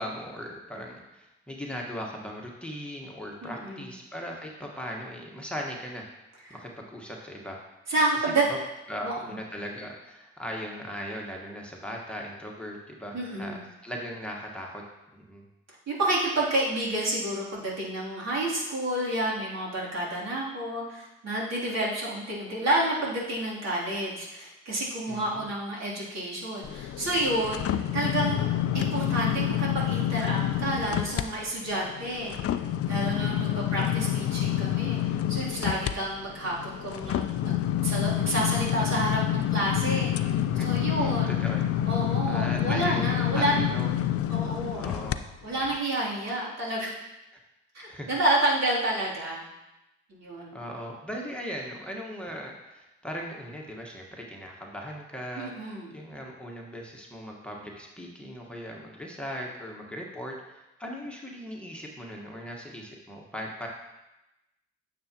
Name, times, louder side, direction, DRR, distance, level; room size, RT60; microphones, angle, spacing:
voice 1, 0.0-6.0 6.5-7.6 8.5-8.6 8.9-14.8 15.1-15.4 25.1-25.5 33.1-33.9 40.6-41.6 42.3-43.9 44.8-45.2 47.9-48.1 50.5-63.7, equal, 5° left, -1 dB, 1.5 m, -38 dB
voice 2, 3.4-3.9 7.9-8.4 9.0-9.2 13.1-13.6 15.9-28.5 28.7-32.3 32.8-41.3 41.9-43.6 44.3-44.9 45.4-46.9 47.7-49.4 50.1-50.6 55.4-55.9, right 1 dB, 55° right, -6 dB, 3.1 m, -29 dB
sound 1, 26.6-31.3 31.7-45.2 45.6-45.8, left 11 dB, 45° left, 0.5 m, -28 dB
9.4 x 6.8 x 3.0 m, 0.97 s
hypercardioid pair, 50°, 32 cm